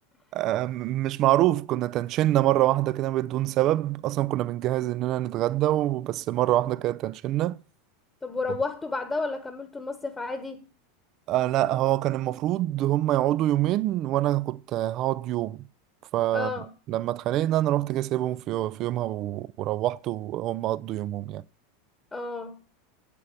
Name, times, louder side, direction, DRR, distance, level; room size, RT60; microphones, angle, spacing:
voice 1, 0.3-7.6 11.3-15.7 16.1-16.5 16.9-21.4, right 14 dB, 45° right, 0.5 m, -25 dB
voice 2, 8.2-10.6 16.3-16.7 22.1-22.5, left 3 dB, 15° left, 1.2 m, -31 dB
8.6 x 8.5 x 6.8 m
figure-of-eight pair, 85°, 0 cm